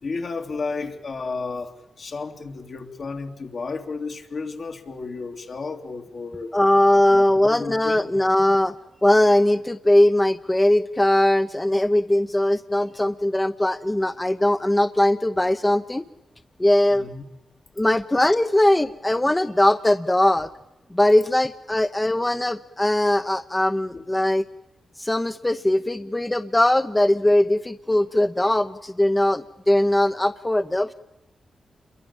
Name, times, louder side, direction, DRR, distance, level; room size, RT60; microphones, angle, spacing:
voice 1, 0.0-6.5 7.1-8.0 16.9-17.2 23.9-24.0, left 4 dB, 65° left, 4 dB, 3.1 m, -32 dB
voice 2, 6.5-8.7 9.0-16.0 16.6-17.1 17.8-20.5 20.9-24.4 25.0-30.9, left 1 dB, 20° left, 10 dB, 1.0 m, -20 dB
28.0 x 23.0 x 7.4 m, 0.92 s
cardioid pair, 50°, 0 cm